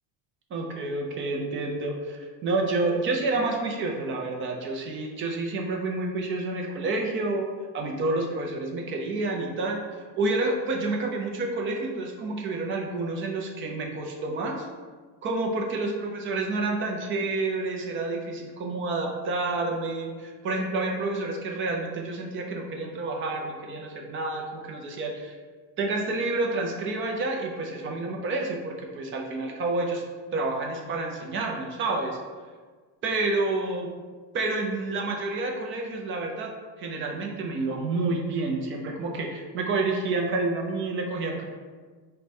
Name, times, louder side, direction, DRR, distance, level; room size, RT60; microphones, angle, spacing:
voice 1, 0.5-7.5 7.7-9.8 10.2-14.7 15.2-25.3 25.8-30.0 30.3-32.2 33.0-33.9 34.3-36.5 36.8-41.4, right 2 dB, 30° right, 1 dB, 0.4 m, -29 dB
4.6 x 2.2 x 4.1 m, 1.5 s
cardioid pair, 165°, 43 cm